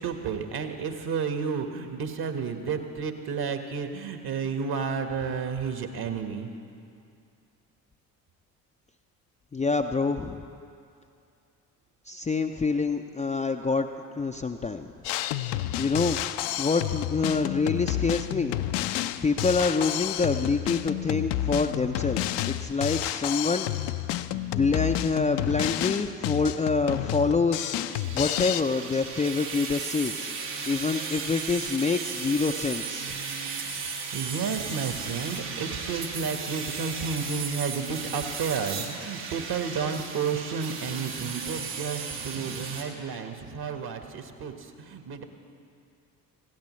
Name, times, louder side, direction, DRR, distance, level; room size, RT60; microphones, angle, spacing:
voice 1, 0.0-6.5 33.7-45.2, right 6 dB, 50° right, 6 dB, 1.5 m, -32 dB
voice 2, 9.5-10.5 12.1-13.9 14.1-14.9 15.8-16.2 16.6-18.6 19.2-23.7 24.3-27.8 28.1-30.3 30.7-33.1, left 4 dB, 15° left, 4 dB, 0.5 m, -26 dB
Drum kit, 15.0-28.6, left 13 dB, 60° left, 0.6 m, -30 dB
sound 1, 27.9-42.8, right 5 dB, 75° right, 1.9 m, -35 dB
19.5 x 16.0 x 3.2 m, 2.5 s
figure-of-eight pair, 50°, 49 cm